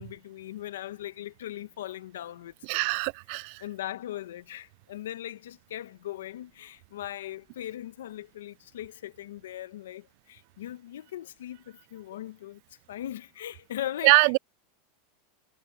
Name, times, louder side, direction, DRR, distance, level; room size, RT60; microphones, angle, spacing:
voice 1, 0.0-2.9 3.6-12.6 12.9-14.4, left 12 dB, 90° left, 1.2 m, -39 dB
voice 2, 2.7-3.6 14.0-14.4, right 30 dB, 60° right, 0.3 m, -22 dB
supercardioid pair, 125°, 0 cm